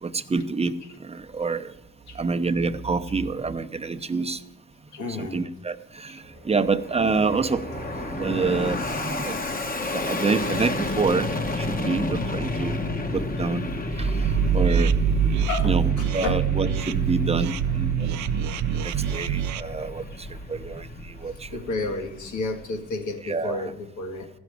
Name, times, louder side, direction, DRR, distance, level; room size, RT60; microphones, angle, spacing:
voice 1, 0.0-0.7 1.0-1.7 2.1-4.4 5.1-9.6 9.9-12.8 13.1-13.7 14.0-15.0 15.6-18.2 18.8-21.5 23.2-23.7, right 4 dB, 20° right, 7 dB, 0.8 m, -27 dB
voice 2, 4.9-5.4 6.1-6.2 15.5-16.4 19.1-19.2 21.5-24.3, left 3 dB, 75° left, 5 dB, 2.0 m, -32 dB
Fixed-wing aircraft airplane, 6.4-23.0, left 2 dB, 30° left, 1.1 m, -32 dB
sound 1, 14.2-19.6, right 10 dB, 70° right, 0.5 m, -26 dB
15.0 x 6.3 x 9.3 m, 0.90 s
cardioid pair, 90°, 30 cm